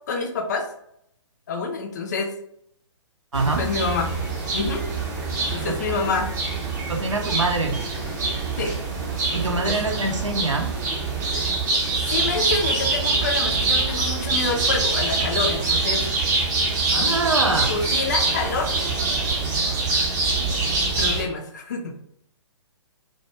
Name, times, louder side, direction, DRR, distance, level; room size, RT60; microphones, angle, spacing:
voice 1, 0.1-0.7 1.5-2.3 3.6-4.1 4.5-4.8 5.5-6.3 8.6-8.8 9.3-9.7 11.3-11.6 12.0-16.0 17.7-18.7 21.0-21.9, left 4 dB, 35° left, 3 dB, 0.4 m, -27 dB
sound 1, 3.3-21.2, right 3 dB, 35° right, 0.7 m, -24 dB
voice 2, 6.9-7.8 9.3-10.7 16.9-17.7, right 2 dB, 75° right, 3 dB, 0.6 m, -24 dB
2.2 x 2.2 x 2.8 m, 0.72 s
figure-of-eight pair, 125°, 16 cm